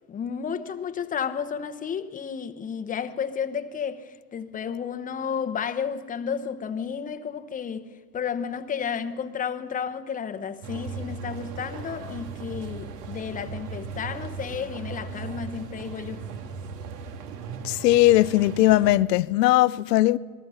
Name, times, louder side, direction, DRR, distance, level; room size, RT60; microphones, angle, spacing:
voice 1, 0.1-16.2, left 7 dB, 15° left, 1.0 m, -32 dB
sound 1, 10.6-18.9, right 5 dB, 70° right, 2.4 m, -37 dB
voice 2, 17.6-20.2, left 16 dB, 75° left, 0.7 m, -19 dB
27.0 x 21.0 x 5.8 m
supercardioid pair, 130°, 49 cm